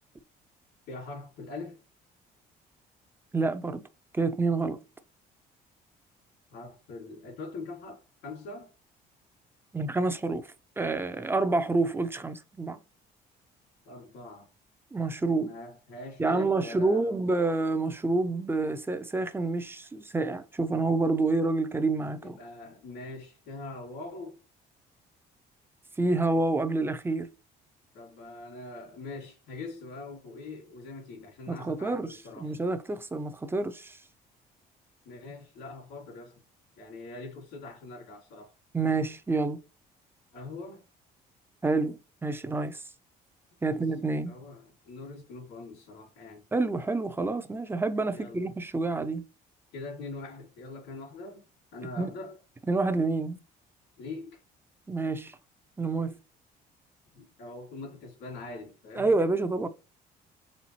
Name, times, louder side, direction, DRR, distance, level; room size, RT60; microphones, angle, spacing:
voice 1, 0.9-1.8 6.5-8.7 13.9-14.5 15.4-17.5 22.2-24.4 27.9-32.6 35.1-36.4 36.8-38.5 40.3-40.8 43.6-43.8 44.3-46.5 48.1-48.5 49.7-52.4 54.0-54.4 57.1-59.1, left 3 dB, 80° left, 2.3 m, -43 dB
voice 2, 3.3-3.8 4.1-4.8 9.7-12.8 14.9-15.5 16.2-22.4 26.0-27.3 31.5-32.1 32.4-34.0 38.7-39.6 41.6-42.8 43.6-44.3 46.5-49.2 52.0-52.1 52.7-53.4 54.9-55.4 55.8-56.1 58.9-59.7, right 3 dB, 15° right, 0.6 m, -28 dB
4.3 x 3.4 x 3.0 m
cardioid pair, 110°, 17 cm